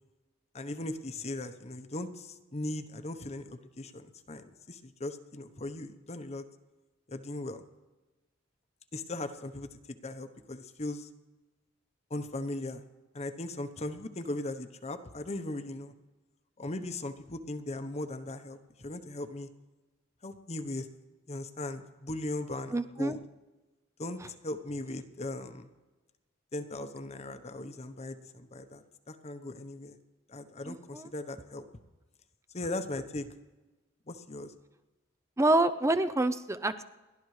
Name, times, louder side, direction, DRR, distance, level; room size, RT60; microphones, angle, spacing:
voice 1, 0.5-6.4 7.1-7.6 8.9-11.1 12.1-12.8 13.1-15.9 16.6-19.5 20.2-20.9 21.3-23.2 24.0-25.7 26.5-30.0 30.3-31.7 32.5-33.3 34.1-34.5, left 2 dB, 35° left, 9 dB, 0.9 m, -38 dB
voice 2, 22.7-23.2 30.7-31.1 35.4-36.8, right 2 dB, 15° right, 11 dB, 0.5 m, -27 dB
30.0 x 12.0 x 3.2 m, 1.2 s
head